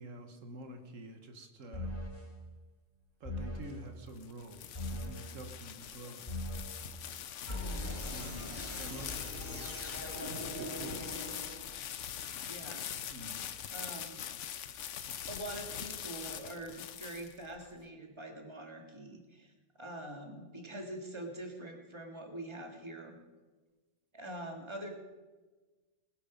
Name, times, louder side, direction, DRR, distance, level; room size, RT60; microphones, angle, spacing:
voice 1, 0.0-2.0 3.2-4.7 4.9-6.2 8.1-8.4 8.8-11.2 13.1-13.5, right 1 dB, 85° right, 6 dB, 1.7 m, -48 dB
sound 1, 1.7-2.3 3.2-3.8 4.7-5.3 6.3-6.8 7.5-11.9, left 1 dB, 40° left, 3.6 m, -40 dB
sound 2, 3.9-17.7, left 9 dB, 75° left, 1.1 m, -43 dB
voice 2, 7.5-8.0 12.4-12.9 13.7-14.2 15.3-23.2 24.1-24.9, right 1 dB, 20° right, 2 dB, 2.1 m, -45 dB
20.0 x 11.0 x 5.2 m, 1.3 s
omnidirectional pair, 1.3 m